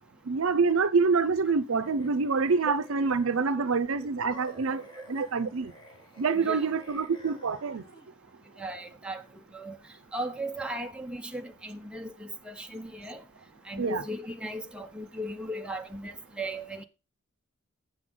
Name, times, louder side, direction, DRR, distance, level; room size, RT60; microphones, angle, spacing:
voice 1, 0.3-5.7 6.2-7.8 13.8-14.0, right 4 dB, 75° right, 0.6 m, -26 dB
sound 1, 1.5-3.7 4.2-8.1, equal, 20° left, 1.5 m, -51 dB
voice 2, 4.7-5.1 6.3-6.7 8.6-9.2 9.5-9.8 10.1-13.2 13.7-16.8, right 1 dB, 5° right, 0.6 m, -37 dB
7.8 x 7.0 x 3.7 m
head